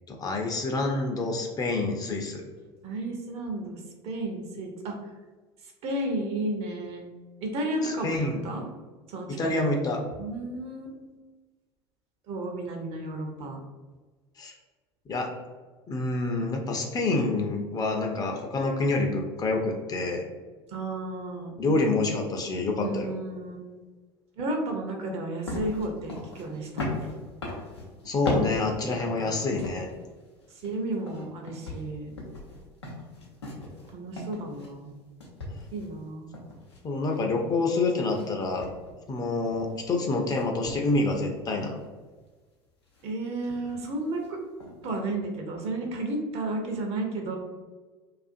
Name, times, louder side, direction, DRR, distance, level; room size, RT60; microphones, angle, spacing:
voice 1, 0.1-2.4 7.8-8.4 9.3-10.0 14.4-14.5 15.1-15.3 15.9-20.3 21.6-23.1 28.0-29.9 36.8-38.7 39.1-41.8, left 2 dB, 30° left, 2 dB, 0.5 m, -27 dB
voice 2, 2.8-5.0 5.8-7.0 7.4-8.6 9.1-9.5 10.2-11.0 12.3-13.6 20.7-21.7 22.8-23.7 24.4-27.1 29.2-29.5 30.6-32.2 33.9-34.9 35.7-36.3 43.0-44.4 44.8-47.4, right 2 dB, 50° right, 2 dB, 0.6 m, -33 dB
sound 1, 25.5-30.0 30.4-34.9 35.2-37.6 38.1-38.3 38.6-40.0 40.4-41.2 41.6-41.8 42.9-43.1 43.5-43.9 44.2-44.3 44.6-44.9, left 2 dB, 90° left, 0.6 m, -38 dB
2.4 x 2.4 x 2.5 m, 1.3 s
hypercardioid pair, 70°, 13 cm